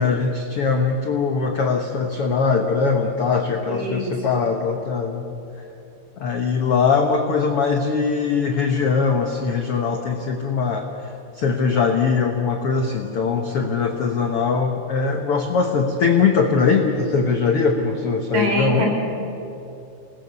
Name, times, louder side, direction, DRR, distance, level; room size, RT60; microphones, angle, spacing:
voice 1, 0.0-5.3 6.2-10.9 11.4-18.9, left 5 dB, 75° left, 3 dB, 1.3 m, -21 dB
voice 2, 3.7-4.1 18.3-18.9, equal, 50° right, 1 dB, 5.1 m, -24 dB
29.5 x 20.0 x 6.9 m, 2.8 s
omnidirectional pair, 4.6 m